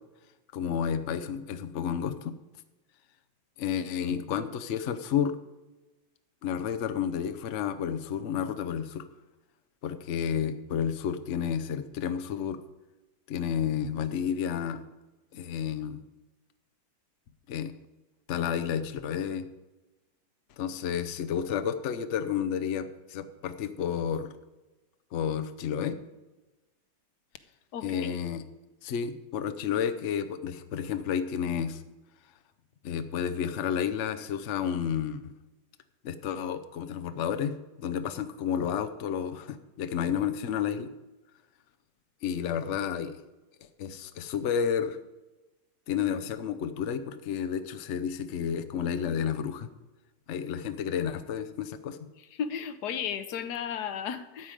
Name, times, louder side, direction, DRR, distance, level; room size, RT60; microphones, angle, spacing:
voice 1, 0.5-2.3 3.6-5.4 6.4-9.0 9.8-12.6 13.3-14.8 15.3-16.0 17.5-17.7 18.3-19.5 20.6-24.3 25.1-26.0 27.8-28.4 28.8-31.8 32.8-35.3 36.0-40.9 42.2-43.2 43.8-45.0 45.9-49.7 50.3-52.0, left 8 dB, 80° left, 9 dB, 0.6 m, -31 dB
voice 2, 27.7-28.2 52.3-54.5, left 8 dB, 65° left, 11 dB, 1.1 m, -34 dB
13.0 x 4.9 x 8.9 m, 1.1 s
omnidirectional pair, 2.3 m